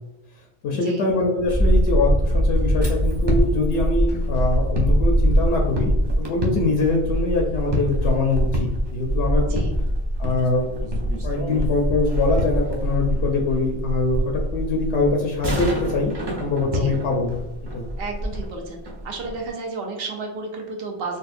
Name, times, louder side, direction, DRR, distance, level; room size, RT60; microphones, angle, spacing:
voice 1, 0.6-5.9 6.2-9.6 10.2-10.6 11.2-14.2 14.5-16.1 16.4-17.4 17.7-17.9, left 3 dB, 75° left, 0 dB, 0.9 m, -23 dB
sound 1, 1.4-19.5, equal, 40° right, 0.4 m, -23 dB
voice 2, 18.0-18.8 19.0-21.2, right 3 dB, 60° right, 1 dB, 0.9 m, -32 dB
4.1 x 2.3 x 2.4 m, 0.98 s
omnidirectional pair, 1.2 m